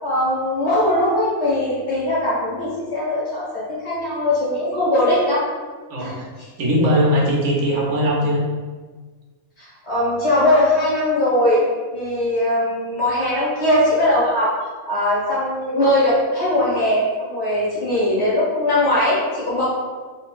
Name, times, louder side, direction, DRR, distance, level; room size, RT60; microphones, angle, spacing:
voice 1, 0.0-5.5 6.0-6.2 9.6-11.6 11.9-14.5 14.9-19.6, left 1 dB, 55° left, -7 dB, 1.7 m, -20 dB
voice 2, 6.6-8.4, equal, 90° right, -3 dB, 1.3 m, -19 dB
3.9 x 3.6 x 2.4 m, 1.4 s
omnidirectional pair, 1.4 m